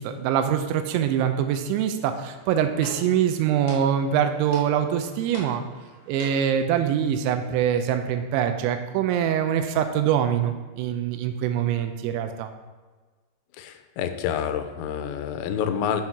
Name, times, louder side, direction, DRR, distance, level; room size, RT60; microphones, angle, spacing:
voice 1, 0.0-5.6 6.1-12.5, right 9 dB, 90° right, 7 dB, 2.9 m, -24 dB
sound 1, 2.2-6.8, left 1 dB, 50° left, 1.6 m, -43 dB
voice 2, 13.6-16.0, left 8 dB, 85° left, 8 dB, 2.9 m, -28 dB
7.8 x 5.7 x 4.6 m, 1.4 s
omnidirectional pair, 5.2 m